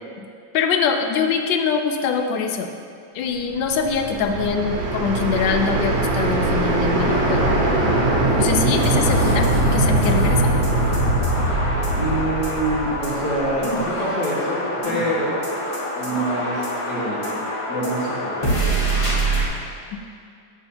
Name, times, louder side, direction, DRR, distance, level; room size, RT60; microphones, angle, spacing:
voice 1, 0.5-2.7 3.1-7.6 8.4-10.5 19.9-20.0, left 6 dB, 80° left, 5 dB, 1.3 m, -23 dB
sound 1, 3.6-13.6, right 2 dB, 80° right, 1.5 m, -21 dB
sound 2, 6.9-19.5, right 1 dB, 20° left, 0.9 m, -26 dB
voice 2, 11.9-15.4 16.0-17.2 17.7-19.1, right 1 dB, 65° left, -6 dB, 2.1 m, -26 dB
7.8 x 7.1 x 2.9 m, 2.3 s
omnidirectional pair, 2.0 m